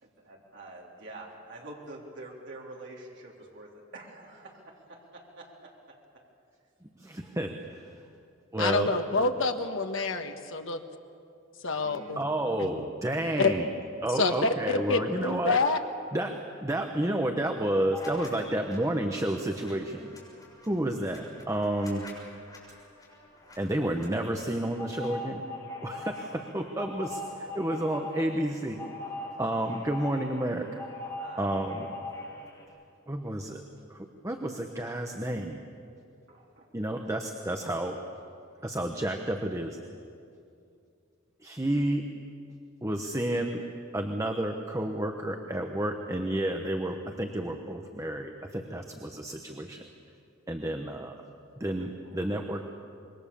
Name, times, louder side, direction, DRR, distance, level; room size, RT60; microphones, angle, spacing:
voice 1, 0.0-6.0 11.7-12.3 31.2-31.5 36.3-36.7 51.8-52.4, right 2 dB, 65° right, -2 dB, 3.6 m, -47 dB
voice 2, 7.0-7.9 8.5-9.0 12.2-13.7 14.0-15.6 16.1-20.1 20.6-22.0 23.6-25.4 25.8-28.8 29.4-30.8 31.4-31.9 33.1-33.6 33.9-35.6 36.7-38.0 38.6-39.8 41.4-42.1 42.8-43.7 43.9-49.8 50.5-51.2 51.6-52.7, right 1 dB, 15° right, 4 dB, 1.1 m, -31 dB
voice 3, 8.6-10.8 11.6-12.2 12.6-12.7 13.4-13.5 14.1-15.8, left 3 dB, 70° left, 5 dB, 1.5 m, -27 dB
sound 1, 17.9-18.3 18.6-32.6, left 2 dB, 20° left, 6.7 m, -42 dB
26.0 x 22.5 x 7.0 m, 2.5 s
head